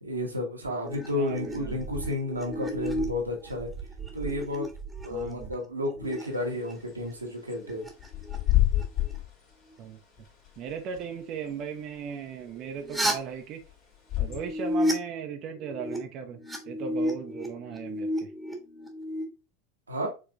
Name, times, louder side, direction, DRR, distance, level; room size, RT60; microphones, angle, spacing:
voice 1, 0.0-3.7 4.1-4.7 5.0-7.9 19.9-20.1, left 1 dB, 85° right, 1 dB, 1.2 m, -32 dB
sound 1, 0.8-5.5 6.0-6.7 7.0-9.2 12.6-13.1 14.2-14.9 15.4-16.0 16.2-19.2, equal, 5° right, 1.3 m, -33 dB
voice 2, 1.1-1.8 5.1-5.5 9.8-10.0 10.6-13.6 14.2-18.3, right 7 dB, 45° right, 4 dB, 0.7 m, -37 dB
Bird / Wind, 6.0-14.7, left 15 dB, 50° left, 2.6 m, -31 dB
5.0 x 3.3 x 2.5 m, 0.31 s
figure-of-eight pair, 80°, 0 cm